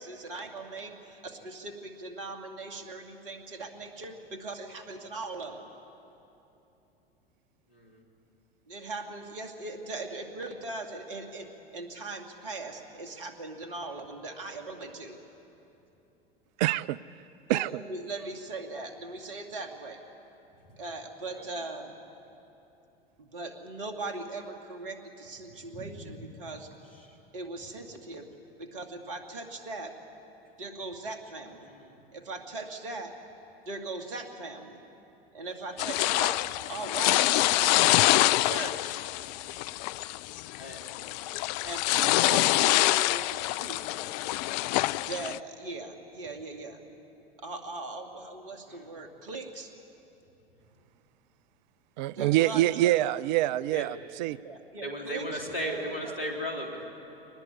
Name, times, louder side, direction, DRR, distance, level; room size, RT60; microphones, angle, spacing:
voice 1, 0.0-5.7 8.7-15.2 17.5-20.0 20.8-22.0 23.2-26.7 27.3-28.3 28.6-29.9 30.6-31.6 32.1-33.1 33.7-34.8 35.3-39.0 41.6-43.8 44.9-46.8 47.4-49.7 52.1-52.9 54.4-56.1, right 2 dB, 65° right, 4 dB, 2.6 m, -40 dB
voice 2, 7.7-8.0 21.3-21.5 25.7-26.2 27.0-27.2 31.6-31.9 40.5-40.9 48.7-48.9 53.7-53.9 54.8-56.9, equal, 80° left, 2 dB, 3.6 m, -36 dB
voice 3, 16.6-17.0 17.5-17.7 52.0-54.4, right 15 dB, 50° right, 19 dB, 0.5 m, -25 dB
sound 1, 35.8-45.4, left 17 dB, 45° left, 0.4 m, -26 dB
24.0 x 19.5 x 8.5 m, 3.0 s
figure-of-eight pair, 85°, 29 cm